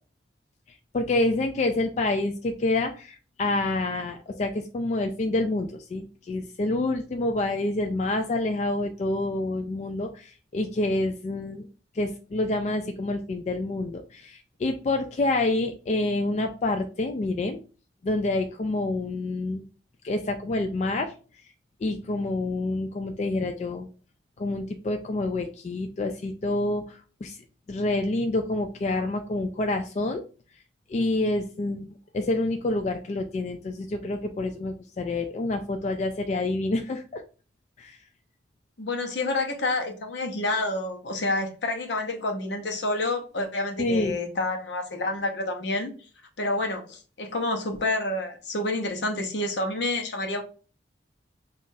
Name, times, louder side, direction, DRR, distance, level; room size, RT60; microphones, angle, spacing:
voice 1, 0.9-11.7 11.9-17.6 18.0-19.6 20.0-21.1 21.8-23.9 24.4-27.4 27.7-30.2 30.9-37.2 37.8-38.0 43.8-44.2, left 2 dB, 40° left, 0.3 m, -27 dB
voice 2, 38.8-45.9 46.4-50.4, left 2 dB, 75° left, 0.8 m, -28 dB
5.6 x 2.4 x 2.6 m
head